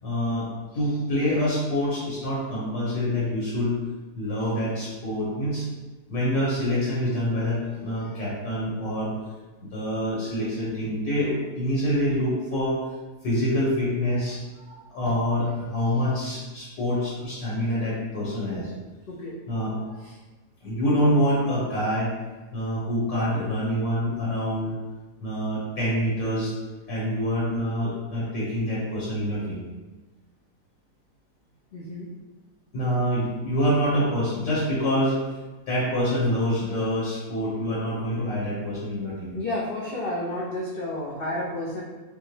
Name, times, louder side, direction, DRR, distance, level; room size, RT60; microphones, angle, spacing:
voice 1, 0.0-3.7 4.1-5.7 6.1-9.1 9.6-12.8 13.2-18.7 19.5-20.0 20.6-22.1 22.5-24.7 25.2-26.5 26.9-29.6 32.7-35.2 35.7-39.4, equal, 60° left, -7 dB, 1.5 m, -26 dB
voice 2, 19.1-19.4 20.0-20.1 31.7-32.1 39.3-41.8, left 1 dB, 80° left, -5 dB, 0.5 m, -31 dB
5.5 x 2.1 x 3.1 m, 1.2 s
omnidirectional pair, 1.7 m